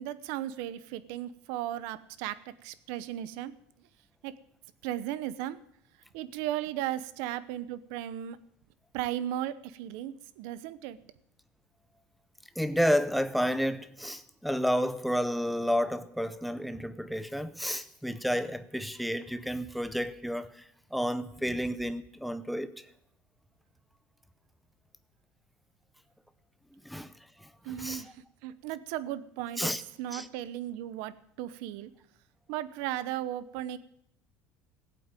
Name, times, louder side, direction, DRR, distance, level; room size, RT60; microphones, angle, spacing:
voice 1, 0.0-3.5 4.2-4.3 4.8-5.6 6.1-8.4 8.9-11.0 27.6-28.2 28.4-29.7 30.0-31.9 32.5-33.8, right 12 dB, 65° right, 0.9 m, -36 dB
voice 2, 12.6-22.9 26.8-28.0 29.6-29.8 30.1-30.3, equal, ahead, 0.5 m, -31 dB
15.5 x 8.6 x 9.0 m
cardioid pair, 180°, 5 cm